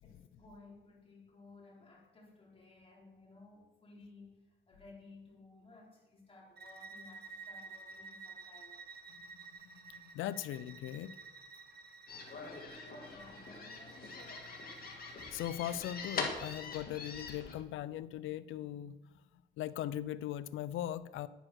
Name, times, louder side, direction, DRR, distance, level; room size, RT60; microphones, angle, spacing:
voice 1, 0.0-8.8 12.3-14.5, left 2 dB, 30° left, -3 dB, 4.7 m, -57 dB
Bowed string instrument, 6.6-15.4, right 4 dB, 55° right, 1.4 m, -52 dB
voice 2, 9.7-11.1 15.3-19.0 19.6-21.3, left 12 dB, 85° left, 17 dB, 0.5 m, -39 dB
sound 1, 12.1-17.5, left 4 dB, 50° left, 2.4 m, -43 dB
9.9 x 9.5 x 6.4 m, 1.1 s
cardioid pair, 90°, 20 cm